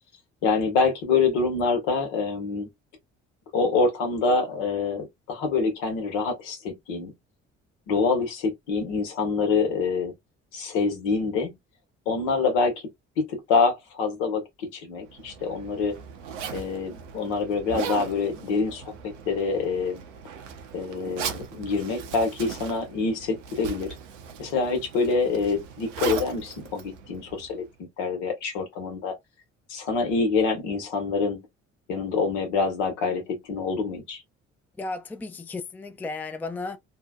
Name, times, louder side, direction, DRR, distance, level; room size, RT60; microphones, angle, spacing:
voice 1, 0.4-2.7 3.5-7.1 7.9-10.1 10.5-11.5 12.1-12.7 13.2-16.0 16.5-20.0 20.7-23.9 24.4-29.1 29.7-31.4 31.9-34.2, left 4 dB, 75° left, 1.2 m, -26 dB
Zipper (clothing), 15.0-27.7, right 7 dB, 80° right, 0.6 m, -38 dB
voice 2, 34.8-36.8, left 3 dB, 5° left, 0.4 m, -34 dB
2.7 x 2.2 x 2.2 m
hypercardioid pair, 50°, 35 cm